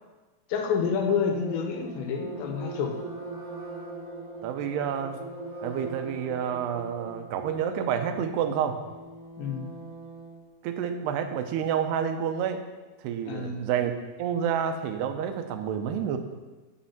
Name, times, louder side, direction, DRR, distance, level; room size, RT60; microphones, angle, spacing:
voice 1, 0.5-3.0 9.4-9.7 13.3-13.7, left 6 dB, 90° left, 4 dB, 3.5 m, -28 dB
sound 1, 0.8-10.4, right 3 dB, 45° right, 3.6 m, -41 dB
voice 2, 4.4-5.2 5.6-8.8 10.6-12.6 13.0-13.9 14.2-16.2, right 8 dB, 80° right, 7 dB, 2.7 m, -29 dB
13.0 x 6.3 x 5.8 m, 1.2 s
omnidirectional pair, 5.0 m